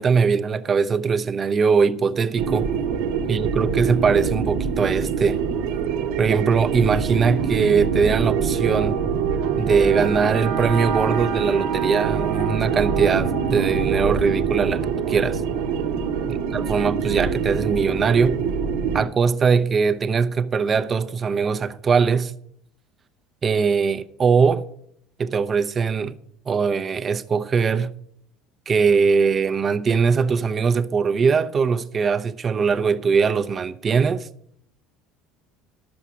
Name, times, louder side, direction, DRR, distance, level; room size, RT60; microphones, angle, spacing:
voice 1, 0.0-2.7 3.3-5.4 6.2-9.0 9.6-14.8 15.1-15.4 16.3-18.4 18.9-22.3 23.4-24.6 25.2-26.1 26.5-27.9 28.7-34.3, right 5 dB, 30° right, 0.6 m, -21 dB
sound 1, 2.4-19.0, right 6 dB, 80° right, 1.0 m, -24 dB
11.5 x 7.0 x 6.1 m
supercardioid pair, 115°, 0 cm